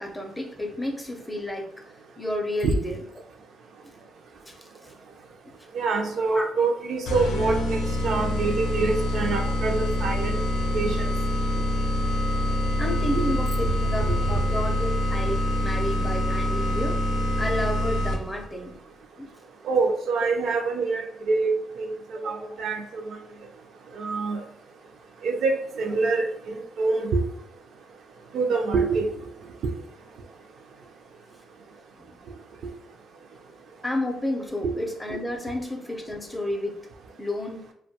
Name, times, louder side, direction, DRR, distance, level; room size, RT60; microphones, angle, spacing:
voice 1, 0.0-1.7 2.2-3.0 4.5-4.7 6.3-6.5 9.5-9.6 12.8-17.0 17.4-18.7 19.2-19.3 22.2-22.6 32.0-32.2 33.8-36.8 37.2-37.6, left 1 dB, 10° left, 2 dB, 0.5 m, -31 dB
voice 2, 5.7-10.4 10.7-11.1 13.1-13.2 19.6-21.9 22.2-23.2 24.0-24.4 25.2-27.2 28.3-29.1 29.6-29.7 34.6-34.7, right 4 dB, 65° right, 3 dB, 0.4 m, -25 dB
sound 1, 7.1-18.4, left 1 dB, 85° left, 0.5 m, -25 dB
2.2 x 2.2 x 2.7 m, 0.70 s
cardioid pair, 90°, 0 cm